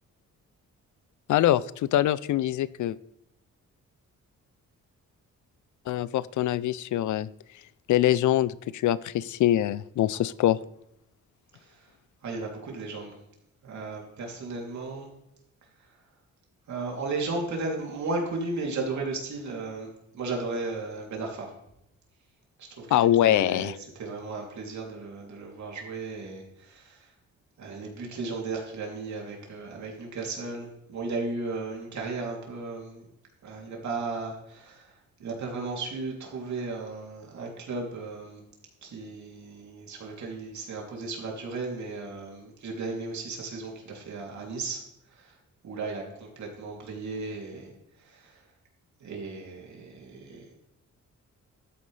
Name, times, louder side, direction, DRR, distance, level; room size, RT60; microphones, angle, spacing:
voice 1, 1.3-3.0 5.9-7.3 7.9-10.6 22.9-23.7, left 12 dB, 70° left, 19 dB, 0.5 m, -24 dB
voice 2, 12.2-13.2 13.6-15.1 16.7-19.9 20.1-21.5 22.6-27.1 27.6-33.0 33.4-38.4 38.8-44.8 45.1-45.4 45.6-47.7 48.0-48.4 49.0-50.5, right 3 dB, 65° right, -1 dB, 3.0 m, -35 dB
12.5 x 9.3 x 3.3 m, 0.79 s
cardioid pair, 130°, 31 cm